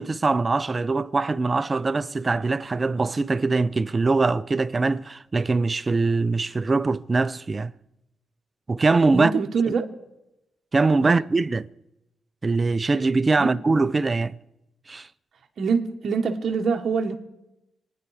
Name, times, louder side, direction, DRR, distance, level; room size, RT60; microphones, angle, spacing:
voice 1, 0.0-7.7 8.7-9.3 10.7-11.7 12.4-14.4 14.9-15.1, right 3 dB, 30° right, 0.5 m, -22 dB
voice 2, 9.1-9.9 11.0-11.2 13.4-13.5 15.6-17.2, right 5 dB, 60° right, 1.2 m, -24 dB
26.5 x 9.7 x 4.8 m
cardioid pair, 105°, 0 cm